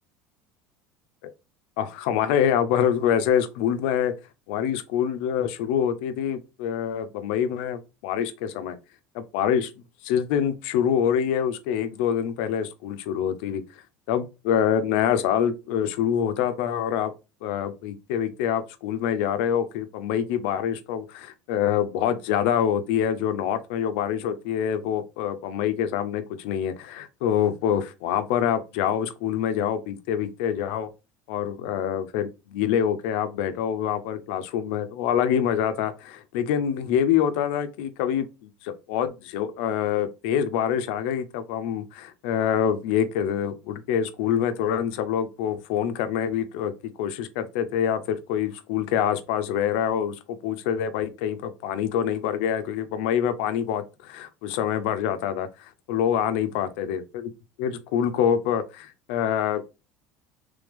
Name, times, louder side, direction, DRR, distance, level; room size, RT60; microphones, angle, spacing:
voice 1, 1.8-4.1 4.5-8.8 9.1-9.7 10.0-13.6 14.1-17.1 17.4-30.9 31.3-57.3 57.6-59.7, left 9 dB, 80° left, 0.5 m, -26 dB
3.5 x 3.3 x 3.3 m
cardioid pair, 150°, 6 cm